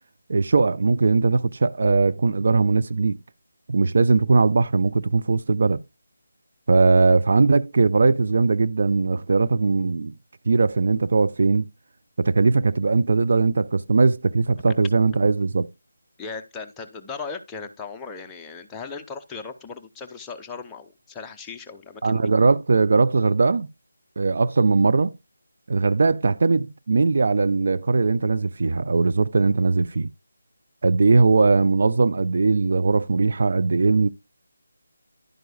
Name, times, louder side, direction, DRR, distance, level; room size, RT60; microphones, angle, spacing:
voice 1, 0.3-3.2 3.7-5.8 6.7-10.1 10.5-11.7 12.2-15.7 22.0-23.7 24.2-25.1 25.7-30.1 30.8-34.1, right 4 dB, 50° right, 0.4 m, -20 dB
voice 2, 16.2-22.3, left 4 dB, 10° left, 0.7 m, -37 dB
11.0 x 9.0 x 2.3 m
figure-of-eight pair, 155°, 0 cm